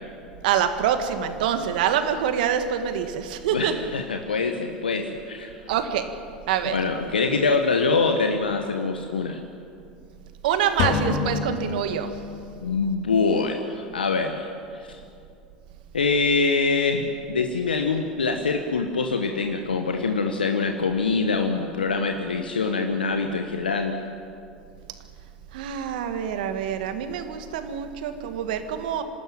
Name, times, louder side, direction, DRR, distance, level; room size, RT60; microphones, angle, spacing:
voice 1, 0.4-3.7 5.7-6.1 6.5-6.8 10.4-12.1 25.5-29.0, right 9 dB, 70° right, 8 dB, 1.8 m, -25 dB
voice 2, 3.5-5.6 6.7-9.4 12.6-14.9 15.9-24.0, left 4 dB, 90° left, 4 dB, 1.3 m, -24 dB
sound 1, 10.8-12.6, left 5 dB, 60° left, 3.1 m, -27 dB
26.0 x 13.0 x 9.2 m, 2.5 s
hypercardioid pair, 80°, 5 cm